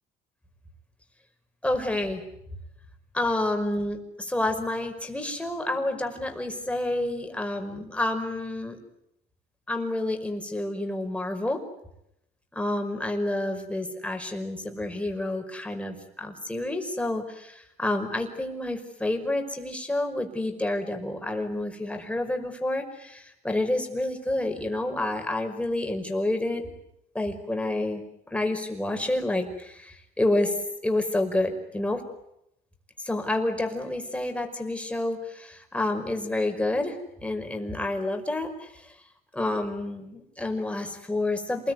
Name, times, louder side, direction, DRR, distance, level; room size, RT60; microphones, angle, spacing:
voice 1, 1.6-2.2 3.1-8.8 9.7-11.6 12.5-26.7 27.1-28.0 28.3-30.6 30.8-32.0 33.0-38.9 39.3-41.7, left 1 dB, 5° left, 5 dB, 5.3 m, -29 dB
28.0 x 21.0 x 9.6 m, 0.81 s
cardioid pair, 110°, 17 cm